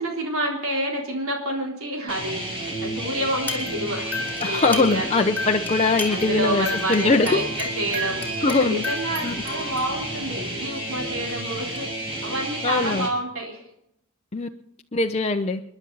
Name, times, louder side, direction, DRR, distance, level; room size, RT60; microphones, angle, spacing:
voice 1, 0.0-5.3 6.1-13.7, right 1 dB, 75° right, 0 dB, 3.8 m, -29 dB
sound 1, 2.1-13.1, right 1 dB, 25° right, 5.9 m, -31 dB
sound 2, 3.4-5.1 5.4-10.4 11.3-11.4 11.8-11.9, left 1 dB, 10° left, 2.8 m, -33 dB
voice 2, 4.4-7.4 8.4-8.8 9.2-9.3 12.6-13.1 14.3-14.5 14.9-15.6, left 3 dB, 30° left, 3 dB, 0.7 m, -21 dB
28.5 x 11.0 x 4.0 m, 0.78 s
head